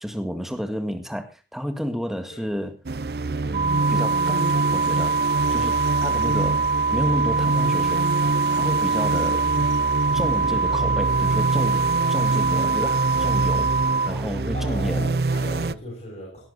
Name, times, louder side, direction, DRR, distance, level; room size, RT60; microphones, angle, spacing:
voice 1, 0.0-2.8 3.4-5.2 5.5-8.1 8.5-9.5 10.1-11.8 12.1-13.8 14.1-15.1, equal, ahead, 6 dB, 1.9 m, -31 dB
sound 1, 2.9-15.7, right 3 dB, 60° right, 0.6 m, -26 dB
sound 2, 3.5-14.1, right 4 dB, 35° right, 1.0 m, -23 dB
voice 2, 14.5-16.5, equal, 40° left, -3 dB, 6.8 m, -37 dB
18.0 x 11.0 x 4.2 m, 0.32 s
head